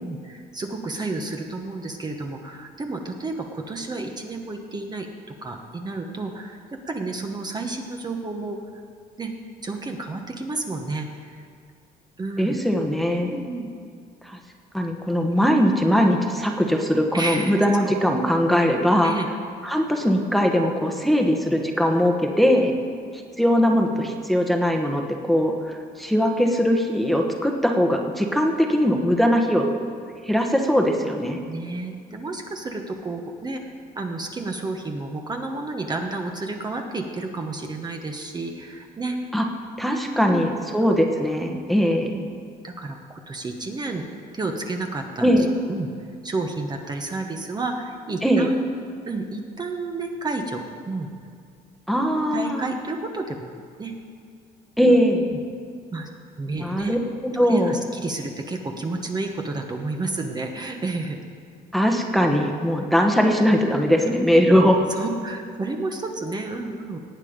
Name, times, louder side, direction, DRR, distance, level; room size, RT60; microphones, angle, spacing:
voice 1, 0.0-8.6 9.2-9.3 9.6-11.4 12.2-12.6 13.2-13.7 15.4-15.5 17.1-17.9 19.0-19.3 21.0-21.2 22.6-22.7 31.5-33.6 33.9-39.2 40.0-40.5 42.0-42.3 42.6-44.0 44.3-45.3 45.7-45.9 46.2-48.6 49.1-51.1 52.3-53.9 55.3-55.4 55.9-56.1 56.4-57.0 57.5-61.2 64.9-67.0, right 3 dB, 25° right, 3 dB, 1.1 m, -31 dB
voice 2, 12.4-13.4 14.2-14.4 14.7-19.1 19.6-22.7 23.4-29.7 30.2-31.4 39.3-39.4 39.8-42.1 45.2-45.5 48.2-48.5 51.9-52.6 54.8-55.3 56.6-57.8 61.7-64.9, equal, ahead, 2 dB, 1.2 m, -20 dB
18.5 x 8.4 x 5.2 m, 2.3 s
cardioid pair, 110°, 17 cm